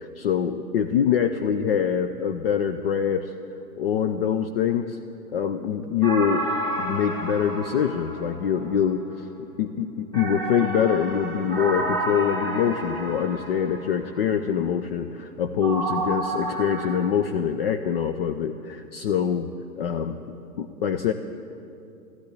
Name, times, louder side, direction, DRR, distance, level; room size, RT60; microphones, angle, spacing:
voice 1, 0.0-3.3 3.8-5.0 5.3-6.4 6.8-9.3 9.6-19.5 19.8-20.2 20.6-21.1, left 8 dB, 40° left, 8 dB, 0.6 m, -24 dB
sound 1, 6.0-8.8 10.1-14.0 15.6-17.0, right 2 dB, 10° left, 2.0 m, -30 dB
14.0 x 10.5 x 8.4 m, 2.8 s
figure-of-eight pair, 120°, 46 cm